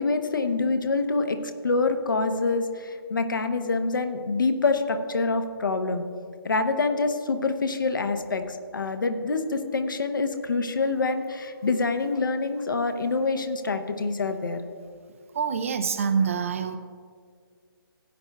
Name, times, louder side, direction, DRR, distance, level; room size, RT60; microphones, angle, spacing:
voice 1, 0.0-1.4 1.6-6.0 6.4-14.6, left 3 dB, 55° left, 7 dB, 0.9 m, -26 dB
voice 2, 15.3-16.8, right 6 dB, 35° right, 9 dB, 0.5 m, -25 dB
16.5 x 8.8 x 2.3 m, 2.1 s
figure-of-eight pair, 140°, 13 cm